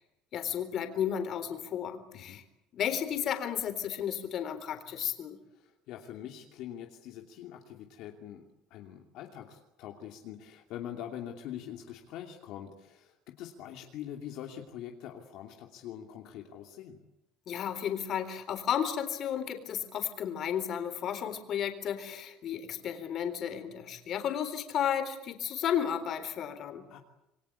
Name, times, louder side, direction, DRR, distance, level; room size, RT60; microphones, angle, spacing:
voice 1, 0.3-2.4 2.7-5.4 17.5-26.9, left 9 dB, 40° left, 8 dB, 3.8 m, -33 dB
voice 2, 5.5-8.4 8.7-17.0 26.9-27.0, left 10 dB, 60° left, 2 dB, 2.8 m, -44 dB
27.5 x 23.5 x 8.4 m, 0.87 s
cardioid pair, 165°, 0 cm